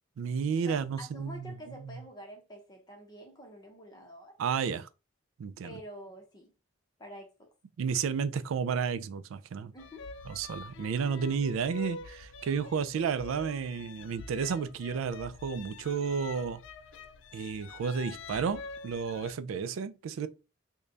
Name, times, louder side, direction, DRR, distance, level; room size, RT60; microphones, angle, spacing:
voice 1, 0.2-1.9 4.4-4.9 5.4-5.7 7.8-9.7 10.3-16.6 17.3-20.3, right 6 dB, 80° right, 0.3 m, -32 dB
voice 2, 0.7-4.3 5.6-6.5 7.0-7.5 9.7-10.0 19.5-19.7, equal, 20° left, 0.8 m, -48 dB
sound 1, 9.8-19.3, left 4 dB, 70° left, 0.4 m, -46 dB
3.3 x 2.2 x 3.8 m
head